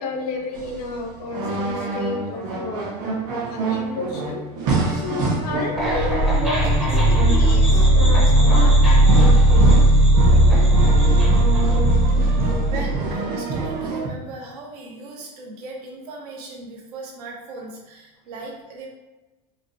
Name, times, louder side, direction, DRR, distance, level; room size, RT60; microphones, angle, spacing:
voice 1, 0.0-2.9 3.5-4.4 4.9-9.9, left 3 dB, 90° left, 2 dB, 0.8 m, -31 dB
sound 1, 0.5-14.1, right 3 dB, 55° right, 1.3 m, -26 dB
sound 2, 5.8-12.9, right 1 dB, ahead, 0.6 m, -16 dB
voice 2, 12.3-18.9, right 3 dB, 85° right, -1 dB, 1.0 m, -38 dB
4.7 x 2.2 x 2.7 m, 1.1 s
supercardioid pair, 160°, 19 cm